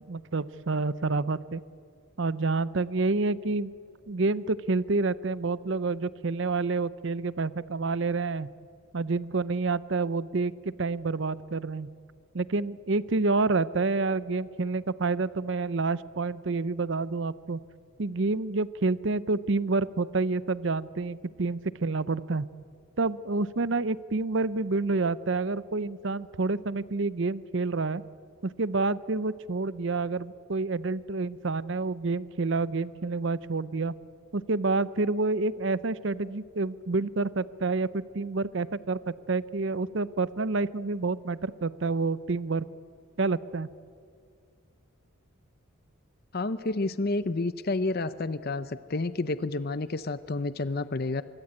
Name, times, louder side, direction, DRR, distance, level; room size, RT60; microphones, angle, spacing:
voice 1, 0.1-1.6 2.2-3.7 4.1-8.5 8.9-11.9 12.3-17.6 18.0-22.5 23.0-28.0 28.4-33.9 34.3-42.6 43.2-43.7, right 3 dB, 55° right, 17 dB, 0.6 m, -28 dB
voice 2, 46.3-51.2, left 2 dB, 45° left, 14 dB, 0.7 m, -30 dB
25.0 x 23.0 x 8.8 m, 2.2 s
head